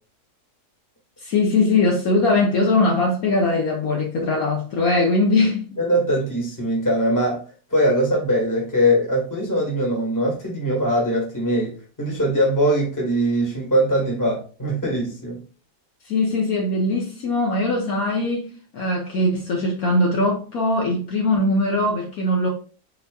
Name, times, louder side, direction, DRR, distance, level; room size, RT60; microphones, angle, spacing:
voice 1, 1.2-5.8 16.1-22.5, left 2 dB, 60° left, 1.2 m, -21 dB
voice 2, 5.8-7.4 7.7-15.4, equal, 10° left, 1.3 m, -21 dB
4.3 x 4.0 x 2.3 m
omnidirectional pair, 1.8 m